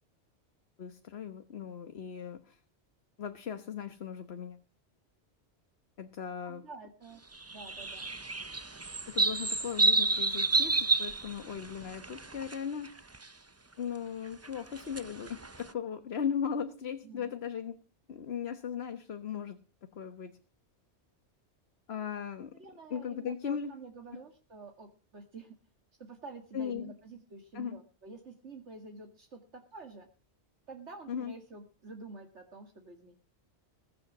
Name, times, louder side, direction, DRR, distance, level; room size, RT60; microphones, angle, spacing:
voice 1, 0.8-2.6 3.2-4.6 6.0-6.6 9.1-13.1 13.8-17.8 18.1-19.6 19.9-20.3 21.9-22.5 22.9-23.7 26.5-26.9 27.5-27.8 31.1-31.3, left 7 dB, 65° left, 9 dB, 1.4 m, -37 dB
voice 2, 6.4-7.2 7.5-8.0 17.0-17.3 22.5-24.9 25.1-25.6 26.0-30.1 30.7-33.2, right 3 dB, 85° right, 2 dB, 2.4 m, -48 dB
sound 1, 7.4-12.6 12.8-13.2 14.4-15.7, right 3 dB, 15° right, 0.6 m, -29 dB
21.0 x 7.7 x 7.4 m, 0.36 s
omnidirectional pair, 1.2 m